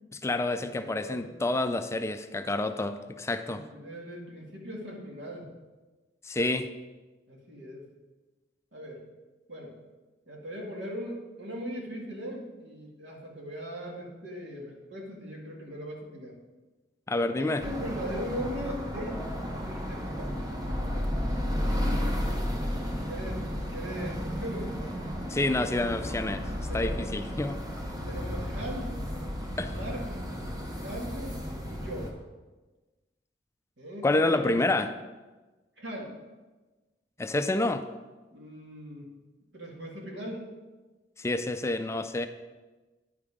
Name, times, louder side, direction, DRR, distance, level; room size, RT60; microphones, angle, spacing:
voice 1, 0.1-3.6 6.2-6.7 17.1-17.7 25.3-27.6 29.6-29.8 34.0-34.9 37.2-37.9 41.2-42.3, left 2 dB, 15° left, 9 dB, 0.3 m, -28 dB
voice 2, 0.8-1.2 3.5-5.5 7.3-7.9 8.7-9.0 9.5-9.8 10.3-16.4 17.3-19.2 19.6-20.4 23.1-24.7 26.7-27.1 28.0-29.0 29.7-30.0 30.8-32.2 33.8-34.8 35.8-36.2 38.3-39.1 39.5-40.5, equal, 90° right, -1 dB, 2.0 m, -39 dB
sound 1, 17.6-32.1, equal, 20° right, 1.0 m, -33 dB
9.5 x 5.4 x 4.9 m, 1.2 s
head